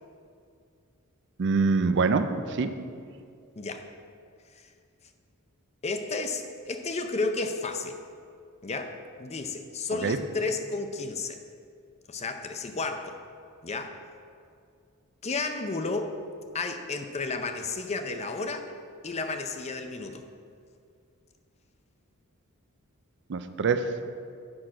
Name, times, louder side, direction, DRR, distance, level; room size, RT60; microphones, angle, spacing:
voice 1, 1.4-2.3 2.6-2.7 10.0-10.2 23.3-23.9, right 4 dB, 55° right, 9 dB, 0.5 m, -24 dB
voice 2, 5.8-7.9 8.6-11.4 12.1-13.2 13.6-14.0 15.2-16.1 16.5-18.7 19.0-20.2, left 3 dB, 30° left, 6 dB, 0.6 m, -32 dB
8.7 x 6.0 x 5.0 m, 2.3 s
head